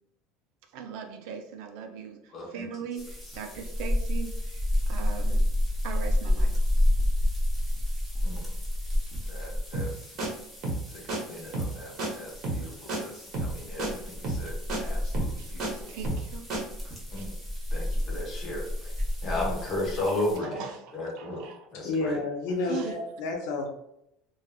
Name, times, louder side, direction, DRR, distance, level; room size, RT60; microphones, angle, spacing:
voice 1, 0.7-5.5 5.8-6.6 15.4-16.5 16.8-17.2 20.2-21.7 22.7-23.0, right 6 dB, 65° right, 5 dB, 0.4 m, -40 dB
voice 2, 2.3-2.6 8.2-8.5 9.3-9.9 10.9-12.7 13.0-15.9 17.1-17.3 17.7-18.7 19.2-20.7 20.9-21.4 21.7-22.2, left 1 dB, 35° left, -3 dB, 1.1 m, -35 dB
sound 1, 3.0-20.4, left 1 dB, ahead, 0.7 m, -30 dB
sound 2, 9.7-9.9 10.2-10.3 10.6-10.8 11.1-11.2 11.5-11.7 12.0-12.1 12.4-12.6 12.9-13.0 13.3-13.5 13.8-13.9 14.2-14.4 14.7-14.8 15.1-15.7 16.0-16.3 16.5-16.6, right 2 dB, 45° right, 0.8 m, -30 dB
voice 3, 21.7-23.7, left 3 dB, 75° left, 2 dB, 0.6 m, -30 dB
2.9 x 2.3 x 2.3 m, 0.79 s
cardioid pair, 160°, 0 cm